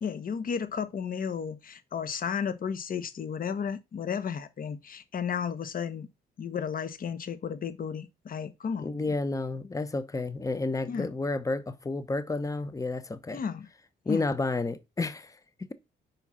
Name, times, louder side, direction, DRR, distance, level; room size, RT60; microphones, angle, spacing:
voice 1, 0.0-6.1 6.4-9.1 10.9-11.1 13.3-13.7 14.1-14.2, left 7 dB, 45° left, 1.0 m, -33 dB
voice 2, 8.8-13.4 14.1-15.7, left 3 dB, 15° left, 0.8 m, -31 dB
5.3 x 4.7 x 5.6 m
cardioid pair, 90°, 20 cm